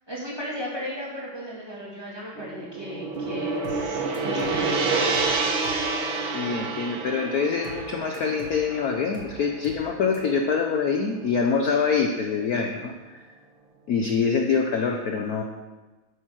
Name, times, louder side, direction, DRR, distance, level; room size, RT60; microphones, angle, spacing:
voice 1, 0.1-4.9, equal, 10° right, -6 dB, 3.0 m, -36 dB
Gong, 2.4-10.7, right 3 dB, 80° right, 2.1 m, -28 dB
sound 1, 3.6-3.9 4.1-4.6 5.1-5.4 5.6-5.9 7.6-7.9 8.1-8.6 9.1-9.4 9.6-9.9 10.1-10.2, left 2 dB, 45° left, 2.0 m, -43 dB
voice 2, 6.3-13.2 13.9-15.4, left 5 dB, 60° left, 3 dB, 1.1 m, -25 dB
10.5 x 8.0 x 6.4 m, 1.2 s
omnidirectional pair, 2.2 m